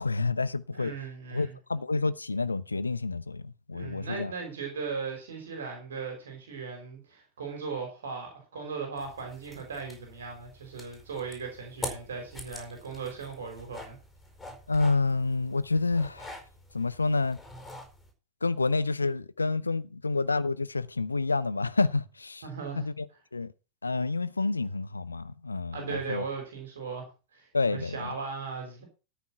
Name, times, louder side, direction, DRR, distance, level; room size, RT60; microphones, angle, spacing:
voice 1, 0.0-0.9 1.3-4.3 14.7-16.3 16.7-17.4 18.4-22.4 22.8-23.1 23.3-23.5 23.8-26.2 27.5-28.1, left 3 dB, 80° left, 0.7 m, -29 dB
voice 2, 0.7-1.6 3.7-14.0 22.4-22.8 25.7-28.8, right 5 dB, 65° right, 4.0 m, -38 dB
sound 1, 9.0-18.1, left 1 dB, 10° left, 4.7 m, -45 dB
13.5 x 6.0 x 6.0 m
figure-of-eight pair, 90°, 0 cm